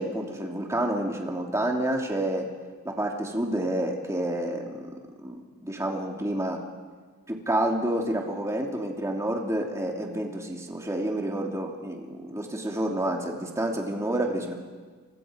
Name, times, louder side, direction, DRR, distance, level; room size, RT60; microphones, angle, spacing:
voice 1, 0.0-2.4 2.8-4.9 5.2-6.6 7.3-14.5, right 1 dB, 15° right, 0 dB, 3.0 m, -29 dB
29.0 x 25.5 x 5.2 m, 1.5 s
head